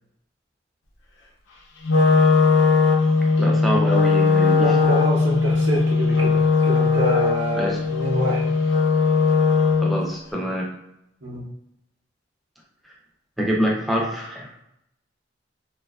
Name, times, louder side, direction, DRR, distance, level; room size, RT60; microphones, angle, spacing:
Wind instrument woodwind instrument, 1.8-10.0, left 4 dB, 85° left, 0.6 m, -19 dB
voice 1, 3.4-4.9 7.5-7.8 9.8-10.7 13.4-14.5, equal, ahead, -3 dB, 0.4 m, -25 dB
voice 2, 4.6-8.5 11.2-11.4, equal, 90° right, -4 dB, 0.8 m, -26 dB
2.7 x 2.3 x 2.3 m, 0.82 s
head